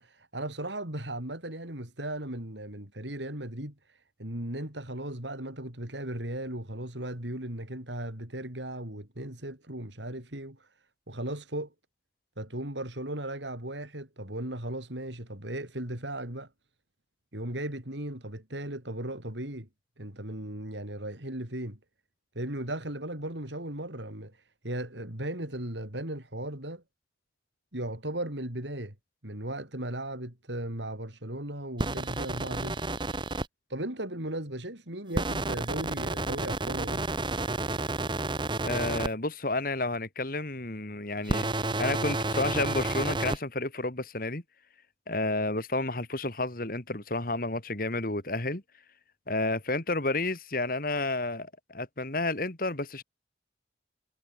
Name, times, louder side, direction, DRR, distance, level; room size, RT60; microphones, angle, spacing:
voice 1, 0.0-10.7 11.1-11.7 12.4-16.5 17.3-19.7 20.0-21.8 22.3-26.8 27.7-28.9 29.2-32.9 33.7-37.1, right 1 dB, 80° right, 5.9 m, -37 dB
sound 1, 31.8-33.5 35.1-39.1 41.2-43.4, right 2 dB, 25° right, 1.2 m, -30 dB
voice 2, 38.6-41.5 41.8-44.4 45.1-48.6 49.3-53.0, left 2 dB, 50° left, 2.5 m, -31 dB
head